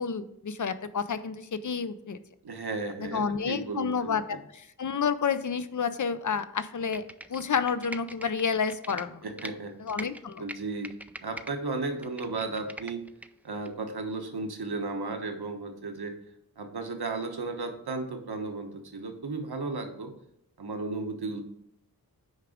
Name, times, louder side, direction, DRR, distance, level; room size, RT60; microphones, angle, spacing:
voice 1, 0.0-2.2 3.0-7.0 7.3-9.3 9.8-10.5, left 6 dB, 50° left, 12 dB, 0.6 m, -30 dB
voice 2, 2.4-4.4 9.2-9.7 10.4-10.9 11.2-13.0 13.4-16.1 16.6-20.1 20.6-21.4, right 3 dB, 75° right, 5 dB, 1.1 m, -34 dB
Computer keyboard, 6.8-9.5 9.9-11.5 11.9-13.3 13.7-13.8, right 1 dB, 5° right, 0.3 m, -42 dB
6.5 x 4.8 x 5.0 m, 0.75 s
wide cardioid pair, 50°, 39 cm